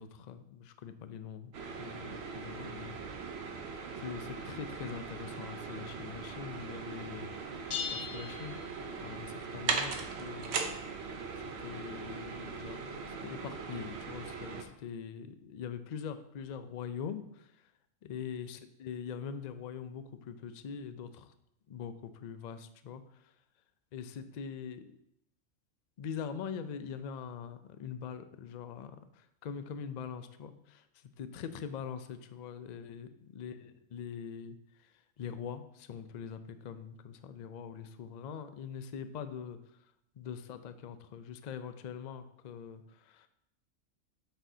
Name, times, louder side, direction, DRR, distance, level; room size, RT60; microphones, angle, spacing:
voice 1, 0.0-1.5 1.8-3.0 3.9-7.4 7.9-8.6 8.9-10.6 11.3-17.7 18.0-21.3 21.7-23.4 23.9-25.0 26.0-43.3, left 7 dB, 75° left, 10 dB, 0.4 m, -43 dB
sound 1, 1.5-14.6, right 5 dB, 60° right, 0.9 m, -40 dB
sound 2, 7.7-9.3, left 6 dB, 55° left, 0.8 m, -40 dB
7.9 x 6.2 x 2.7 m, 0.79 s
omnidirectional pair, 1.3 m